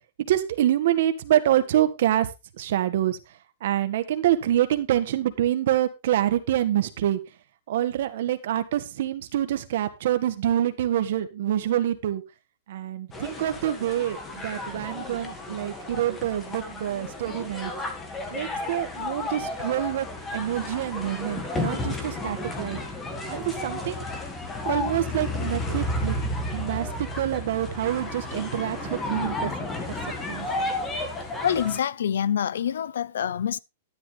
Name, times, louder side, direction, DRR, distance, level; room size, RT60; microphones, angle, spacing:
voice 1, 0.3-2.3 2.6-3.2 3.6-7.2 7.7-12.2 12.7-17.7 18.3-20.1 20.3-22.8 23.3-24.1 24.6-26.1 26.5-29.5 30.3-30.5, right 12 dB, 55° right, 1.7 m, -26 dB
sound 1, 13.1-31.8, left 2 dB, 10° left, 1.8 m, -32 dB
voice 2, 31.4-33.6, left 9 dB, 85° left, 0.7 m, -26 dB
12.0 x 11.0 x 3.3 m
supercardioid pair, 170°, 0 cm